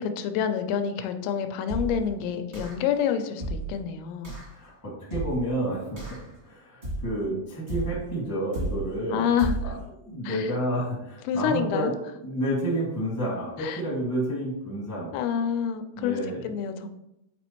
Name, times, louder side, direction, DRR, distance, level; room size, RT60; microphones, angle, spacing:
voice 1, 0.0-4.4 9.1-9.7 10.2-10.5 11.3-12.0 13.6-13.8 15.1-16.2 16.4-16.9, left 8 dB, 90° left, 8 dB, 2.8 m, -28 dB
sound 1, 1.7-2.1 2.5-2.9 3.4-3.8 4.2-4.5 5.1-5.5 6.0-6.4 6.8-7.2 7.7-8.1 8.5-9.0 9.4-9.8, right 2 dB, 40° right, 0.8 m, -33 dB
voice 2, 4.5-6.2 6.4-9.3 9.6-11.9 12.2-15.1 15.9-16.5, right 1 dB, 20° left, -5 dB, 0.4 m, -30 dB
8.5 x 4.2 x 3.0 m, 0.87 s
omnidirectional pair, 4.9 m